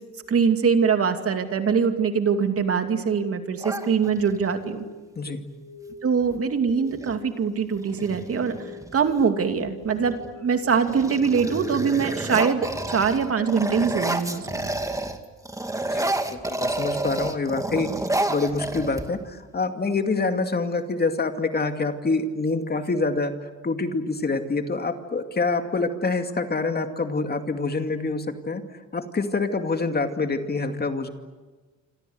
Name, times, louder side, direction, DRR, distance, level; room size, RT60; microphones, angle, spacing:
voice 1, 0.3-4.8 6.0-8.6 8.9-14.7, right 6 dB, 50° right, 7 dB, 2.6 m, -23 dB
sound 1, 2.7-11.1, left 1 dB, 75° right, 3.2 m, -44 dB
sound 2, 3.6-4.5 6.2-6.4 6.7-7.2 7.7-9.2 9.9-10.3 10.6-15.2 15.4-19.4, right 2 dB, 10° right, 2.2 m, -30 dB
voice 2, 15.9-17.9 18.3-23.3 23.6-28.6 28.9-31.1, left 3 dB, 30° left, 6 dB, 2.4 m, -26 dB
27.5 x 26.0 x 8.1 m, 1.3 s
cardioid pair, 90°, 30 cm